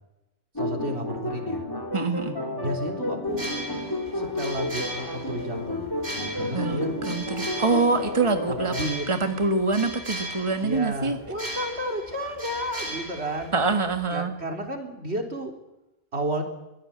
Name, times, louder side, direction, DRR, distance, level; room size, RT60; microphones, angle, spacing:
sound 1, 0.6-8.9, left 1 dB, 20° left, 4.0 m, -31 dB
voice 1, 0.6-1.7 2.6-3.5 4.1-6.9 8.5-9.1 10.6-13.6 14.1-15.5 16.1-16.4, right 1 dB, 85° right, 4 dB, 3.9 m, -32 dB
voice 2, 1.9-2.4 6.5-6.8 7.1-8.7 9.1-11.2 13.5-14.3, right 3 dB, 30° right, 7 dB, 1.7 m, -25 dB
sound 2, 3.3-14.1, right 1 dB, 45° right, 3.8 m, -38 dB
sound 3, 11.1-12.4, equal, 55° left, 4.1 m, -50 dB
23.0 x 17.0 x 8.8 m, 0.96 s
omnidirectional pair, 1.1 m